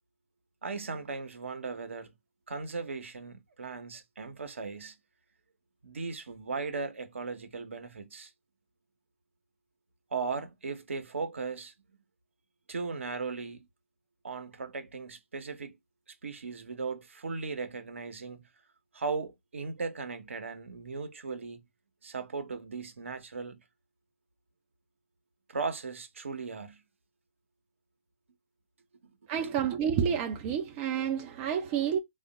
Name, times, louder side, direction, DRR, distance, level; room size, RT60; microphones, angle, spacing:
voice 1, 0.6-2.1 2.5-4.9 5.8-8.3 10.1-11.7 12.7-13.7 14.2-15.7 16.2-18.4 18.9-21.6 22.0-23.6 25.5-26.8 29.4-29.5, right 4 dB, 65° right, 0.9 m, -37 dB
voice 2, 29.3-32.0, right 8 dB, 25° right, 0.4 m, -29 dB
3.4 x 2.4 x 3.8 m
figure-of-eight pair, 130°, 7 cm